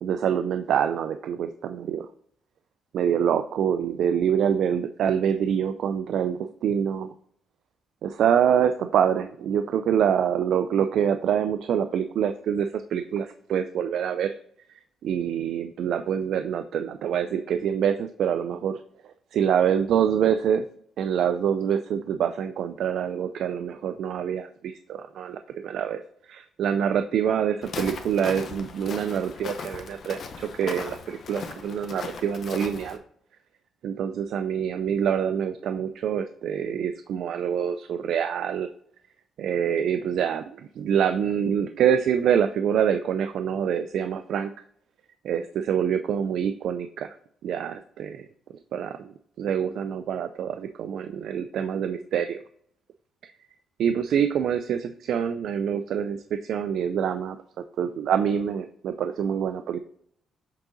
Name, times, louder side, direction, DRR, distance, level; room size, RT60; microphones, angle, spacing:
voice 1, 0.0-2.1 2.9-7.1 8.0-14.3 15.0-18.8 19.3-20.6 21.0-33.0 33.8-38.7 39.4-44.5 45.2-47.1 47.4-48.3 48.7-49.1 49.4-52.4 53.8-57.4 57.8-59.8, right 8 dB, 70° right, 9 dB, 0.4 m, -26 dB
Walk footsteps, 27.6-33.0, left 5 dB, 55° left, 0.9 m, -38 dB
7.4 x 3.8 x 3.8 m, 0.64 s
cardioid pair, 90°, 0 cm